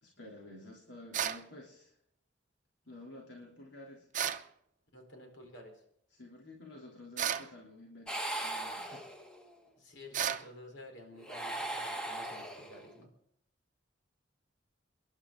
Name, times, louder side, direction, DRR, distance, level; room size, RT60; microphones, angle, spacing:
voice 1, 0.0-1.9 2.8-4.1 6.1-9.0, left 1 dB, 65° left, -2 dB, 3.2 m, -51 dB
sound 1, 1.1-1.4 4.1-4.5 7.2-7.5 10.1-10.5, right 9 dB, 45° right, 0.7 m, -33 dB
voice 2, 4.9-5.8 9.8-13.1, left 1 dB, 85° left, 2 dB, 4.2 m, -52 dB
sound 2, 8.1-9.5 11.2-13.0, right 1 dB, 5° left, 1.3 m, -39 dB
27.0 x 11.5 x 3.8 m, 0.71 s
head